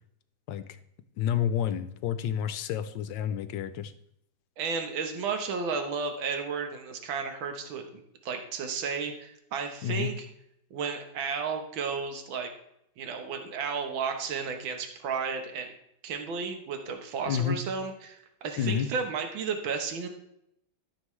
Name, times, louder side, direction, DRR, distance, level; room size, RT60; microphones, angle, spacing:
voice 1, 1.2-3.9 9.8-10.1 17.3-17.6 18.6-18.9, left 9 dB, 75° left, 12 dB, 1.3 m, -29 dB
voice 2, 4.6-7.8 8.2-10.3 10.7-12.5 13.0-15.7 16.0-20.1, right 5 dB, 75° right, 5 dB, 1.9 m, -33 dB
13.0 x 7.1 x 3.2 m, 0.76 s
omnidirectional pair, 2.2 m